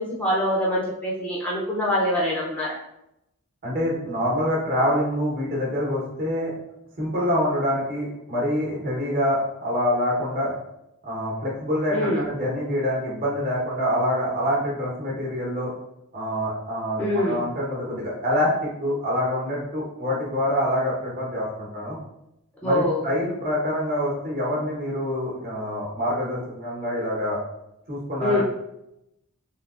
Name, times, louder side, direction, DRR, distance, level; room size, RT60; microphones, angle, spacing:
voice 1, 0.0-2.8 11.9-12.2 17.0-17.4 22.6-23.0 28.2-28.4, left 1 dB, 5° left, -5 dB, 0.5 m, -24 dB
voice 2, 3.6-6.5 7.0-10.5 11.0-15.7 16.1-18.5 18.8-22.0 22.6-27.4 27.9-28.4, equal, 40° right, -5 dB, 1.0 m, -26 dB
3.5 x 2.8 x 2.4 m, 0.83 s
head